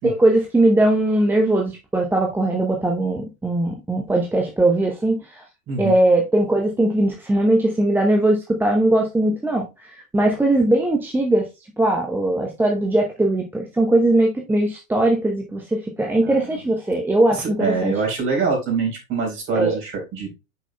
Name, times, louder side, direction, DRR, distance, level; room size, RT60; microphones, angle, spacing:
voice 1, 0.0-5.4 5.8-9.7 10.1-11.5 11.8-17.9 19.5-19.8, right 1 dB, 5° right, 0.7 m, -20 dB
voice 2, 5.7-6.0 16.2-16.6 17.4-20.3, right 4 dB, 30° right, 3.9 m, -24 dB
8.6 x 6.1 x 2.2 m
figure-of-eight pair, 90°, 43 cm